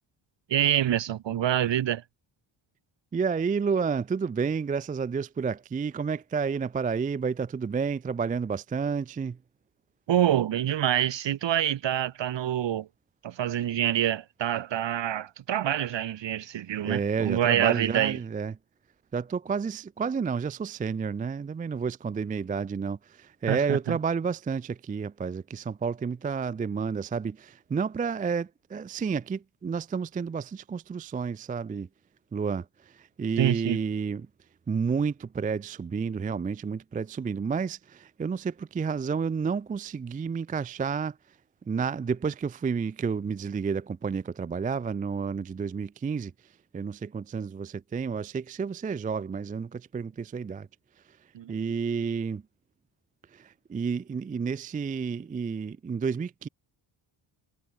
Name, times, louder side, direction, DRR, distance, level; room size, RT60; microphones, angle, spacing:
voice 1, 0.5-2.0 10.1-12.9 13.2-18.2 23.5-24.0 33.4-33.8 51.3-51.5, right 11 dB, 60° right, 1.9 m, -26 dB
voice 2, 3.1-9.4 16.9-18.6 19.1-31.9 32.3-34.3 34.7-41.2 41.7-46.3 46.7-50.7 51.5-52.4 53.3-56.5, right 5 dB, 20° right, 0.4 m, -30 dB
cardioid pair, 100°, 50 cm